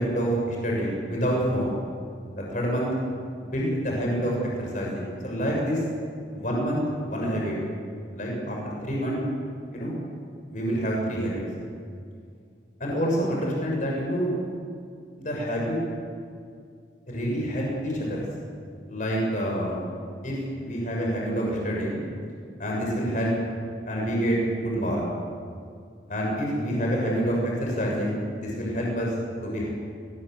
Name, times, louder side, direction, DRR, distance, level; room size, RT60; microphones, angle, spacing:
voice 1, 0.0-1.8 2.4-2.9 3.4-5.8 6.3-7.6 8.1-9.2 9.7-9.9 10.5-11.4 12.8-14.3 15.2-15.8 17.1-18.2 18.9-19.9 20.2-22.0 22.6-23.3 23.9-25.0 26.1-29.1 29.4-29.7, equal, 45° left, -2 dB, 6.5 m, -27 dB
24.5 x 19.5 x 7.8 m, 2.3 s
head